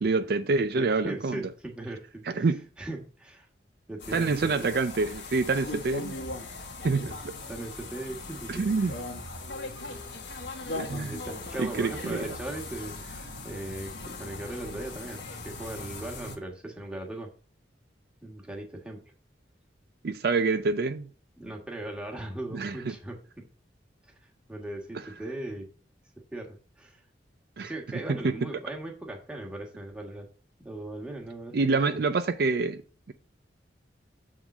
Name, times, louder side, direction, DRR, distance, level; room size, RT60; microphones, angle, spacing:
voice 1, 0.0-1.4 2.3-2.6 4.1-6.1 6.8-7.3 8.5-8.9 10.8-11.1 11.6-12.2 20.0-21.1 22.5-22.9 27.6-27.7 28.1-28.3 31.5-32.8, right 4 dB, 55° right, 0.4 m, -27 dB
voice 2, 0.8-2.5 2.8-3.5 3.9-4.7 7.0-7.2 7.5-9.0 10.9-17.3 18.2-19.0 21.4-23.4 24.5-25.7 26.3-27.0 27.6-30.3 30.6-32.0, right 1 dB, 5° right, 1.4 m, -39 dB
sound 1, 4.0-16.4, left 2 dB, 80° left, 1.4 m, -39 dB
7.1 x 3.7 x 5.9 m
head